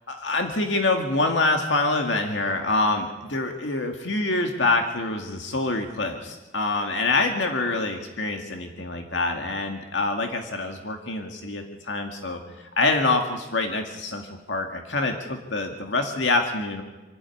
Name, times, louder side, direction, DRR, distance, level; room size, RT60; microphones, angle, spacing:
voice 1, 0.1-12.4 12.8-16.8, left 2 dB, 70° left, 4 dB, 2.1 m, -25 dB
27.0 x 12.0 x 9.7 m, 1.2 s
head